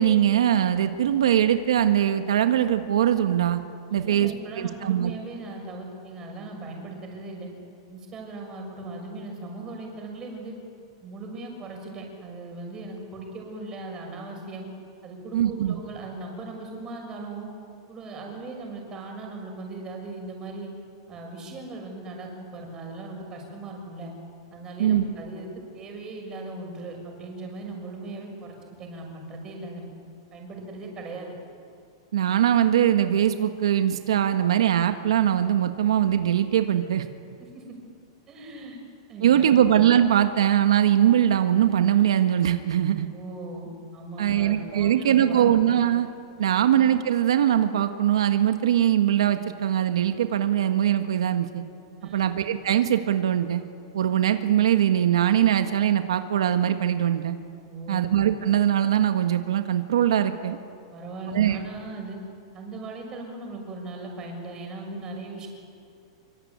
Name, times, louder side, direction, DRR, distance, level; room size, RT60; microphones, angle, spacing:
voice 1, 0.0-3.6 3.9-4.3 4.6-5.1 15.3-15.7 24.8-25.0 32.1-37.0 39.2-43.1 44.2-46.1 46.4-51.6 52.1-53.6 53.9-57.4 57.9-60.6 61.3-61.6, right 10 dB, 90° right, 8 dB, 1.5 m, -21 dB
voice 2, 3.9-7.5 7.9-10.6 11.0-14.7 15.0-17.5 17.9-20.7 21.1-24.1 24.5-29.9 30.3-31.3 37.4-37.6 38.3-38.8 39.1-39.7 43.1-45.8 46.4-46.7 52.0-52.3 57.7-58.0 60.9-62.2 62.5-65.5, right 2 dB, 20° right, 1 dB, 6.6 m, -38 dB
26.0 x 24.5 x 9.5 m, 2.4 s
supercardioid pair, 160°, 3 cm